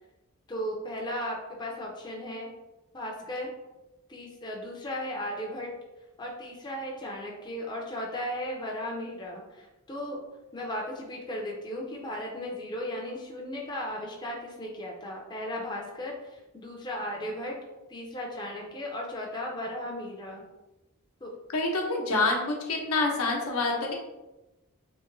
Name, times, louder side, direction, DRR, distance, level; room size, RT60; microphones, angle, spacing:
voice 1, 0.5-2.5 2.9-3.5 4.1-5.7 6.2-10.2 10.5-17.6 17.9-20.4 21.2-21.3, left 1 dB, 20° left, -1 dB, 0.5 m, -36 dB
voice 2, 21.5-23.9, left 3 dB, 85° left, 0 dB, 0.9 m, -27 dB
3.5 x 3.0 x 3.2 m, 1.0 s
head